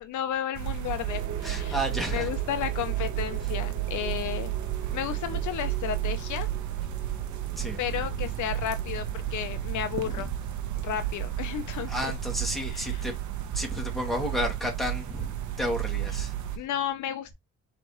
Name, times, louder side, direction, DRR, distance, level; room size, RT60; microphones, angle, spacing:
voice 1, 0.0-1.8 2.1-4.5 4.9-6.5 7.8-10.3 10.8-12.1 12.7-13.0 16.6-17.3, left 10 dB, 75° left, 0.6 m, -33 dB
sound 1, 0.5-16.6, right 12 dB, 75° right, 0.9 m, -32 dB
sound 2, 1.1-11.5, right 5 dB, 30° right, 2.4 m, -46 dB
voice 2, 1.4-2.3 3.4-3.5 5.2-5.4 7.6-8.1 10.0-10.3 11.9-13.1 13.5-16.4, equal, ahead, 2.1 m, -32 dB
4.5 x 3.4 x 3.0 m
cardioid pair, 90°, 30 cm